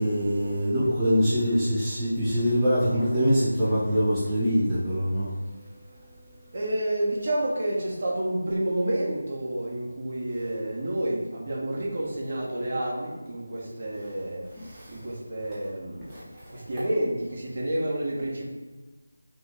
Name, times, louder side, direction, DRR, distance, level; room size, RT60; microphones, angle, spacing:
voice 1, 0.0-5.3 14.0-14.1 14.6-15.0 16.1-16.4, equal, 10° right, -11 dB, 0.7 m, -24 dB
voice 2, 6.5-14.4 14.9-16.1 16.7-18.5, right 1 dB, 50° right, -4 dB, 1.5 m, -29 dB
5.9 x 2.4 x 3.6 m, 1.3 s
figure-of-eight pair, 165°, 0 cm